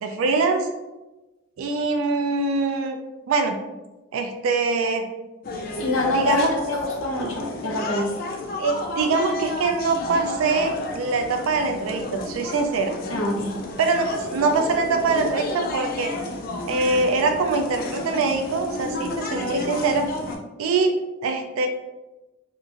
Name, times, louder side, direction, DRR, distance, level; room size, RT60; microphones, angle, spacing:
voice 1, 0.0-0.7 1.6-3.0 3.3-3.6 4.1-5.1 6.1-6.5 8.6-12.9 13.8-16.1 16.7-20.1 20.6-20.9 21.2-21.7, right 3 dB, 80° right, 5 dB, 0.3 m, -23 dB
sound 1, 5.4-20.4, left 3 dB, 45° left, 0.3 m, -32 dB
voice 2, 5.8-8.1 13.1-13.6, left 2 dB, 85° left, -2 dB, 0.7 m, -25 dB
2.8 x 2.5 x 2.4 m, 1.1 s
head